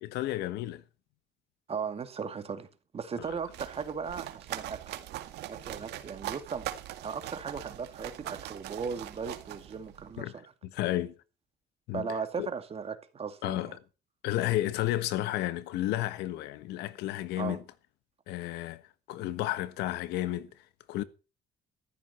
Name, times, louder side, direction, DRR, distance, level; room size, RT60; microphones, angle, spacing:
voice 1, 0.0-0.8 3.2-3.3 10.2-10.4 10.6-11.2 11.9-12.1 12.4-12.5 13.4-13.8 14.2-17.6 18.3-18.8 19.1-20.5 20.9-21.0, left 14 dB, 85° left, 1.3 m, -32 dB
voice 2, 1.7-2.7 2.9-4.8 5.5-6.6 7.0-10.5 11.9-13.8 17.4-17.6, right 6 dB, 35° right, 2.4 m, -37 dB
sound 1, 3.2-10.2, right 13 dB, 80° right, 2.0 m, -41 dB
15.5 x 13.5 x 4.4 m
cardioid pair, 110°, 17 cm